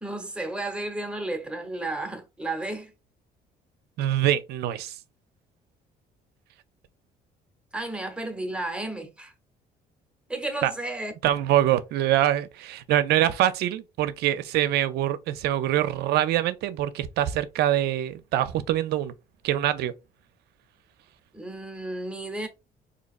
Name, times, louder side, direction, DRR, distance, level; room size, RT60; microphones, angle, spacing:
voice 1, 0.0-2.9 7.7-9.3 10.3-11.1 21.3-22.5, right 2 dB, 5° right, 0.9 m, -32 dB
voice 2, 4.0-4.9 10.6-10.7 11.2-19.1 19.4-19.9, right 12 dB, 75° right, 0.5 m, -24 dB
4.0 x 2.8 x 2.4 m
cardioid pair, 110°, 17 cm